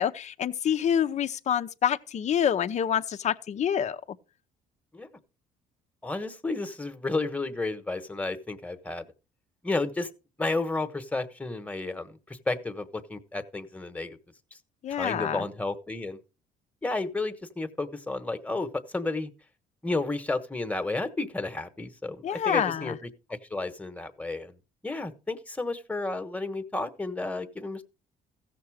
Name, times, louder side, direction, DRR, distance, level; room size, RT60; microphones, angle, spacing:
voice 1, 0.0-4.0 14.8-15.4 22.2-23.0, left 9 dB, 45° left, 0.7 m, -27 dB
voice 2, 6.0-9.0 9.6-10.1 10.4-14.2 14.9-16.2 16.8-19.3 19.8-24.6 24.8-27.8, left 2 dB, 10° left, 1.3 m, -32 dB
15.5 x 6.8 x 4.9 m
cardioid pair, 110°, 17 cm